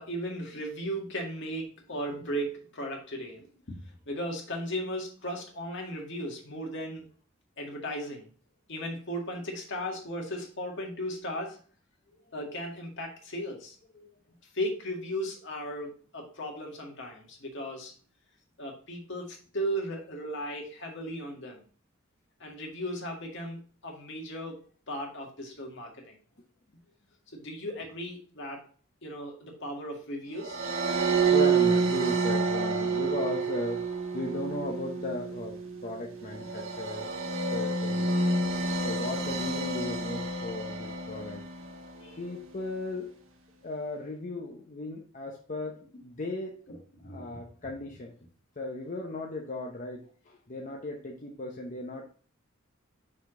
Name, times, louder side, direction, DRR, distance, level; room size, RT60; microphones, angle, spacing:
voice 1, 0.0-3.5 4.1-7.1 7.6-8.3 8.7-11.6 12.3-13.8 14.5-17.9 18.6-21.6 22.4-24.6 24.9-26.2 27.3-28.6 29.0-30.7 41.9-42.2 46.7-47.2, equal, 60° left, 1 dB, 1.9 m, -36 dB
sound 1, 30.4-41.8, right 4 dB, 75° right, 1.2 m, -29 dB
voice 2, 31.3-33.8 34.1-37.1 37.5-38.1 38.8-41.4 42.2-43.1 43.6-46.6 47.0-48.1 48.6-52.0, left 2 dB, 40° left, 0 dB, 0.8 m, -36 dB
5.9 x 5.0 x 3.8 m, 0.42 s
head